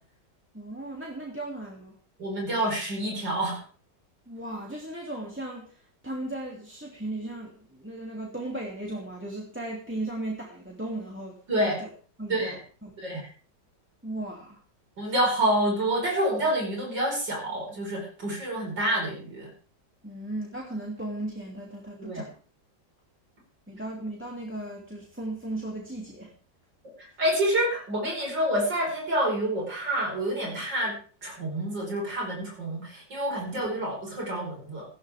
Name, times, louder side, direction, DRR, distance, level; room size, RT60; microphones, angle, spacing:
voice 1, 0.5-2.0 4.3-11.9 12.2-13.0 14.0-14.6 20.0-22.3 23.7-26.3 33.5-33.7, right 1 dB, 5° right, -1 dB, 2.7 m, -36 dB
voice 2, 2.2-3.6 11.5-11.8 12.3-12.5 13.0-13.2 15.0-19.5 22.0-22.2 27.0-30.9 31.2-34.9, right 1 dB, 75° right, -2 dB, 5.9 m, -28 dB
19.0 x 14.5 x 3.6 m, 0.40 s
omnidirectional pair, 1.9 m